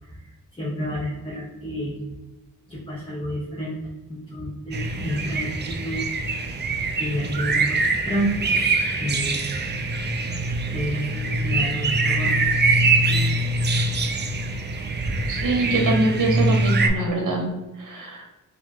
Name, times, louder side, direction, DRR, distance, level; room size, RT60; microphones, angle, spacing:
voice 1, 0.0-1.9 2.7-3.8 4.1-6.1 6.3-6.7 7.0-8.5 9.0-9.5 10.7-12.5 12.8-13.3, equal, 15° left, -7 dB, 1.0 m, -30 dB
sound 1, 4.7-16.9, right 2 dB, 30° right, 0.4 m, -23 dB
voice 2, 15.3-17.4 17.8-18.2, right 2 dB, 65° right, 0 dB, 1.2 m, -24 dB
4.3 x 2.9 x 2.9 m, 1.0 s
wide cardioid pair, 95°, 33 cm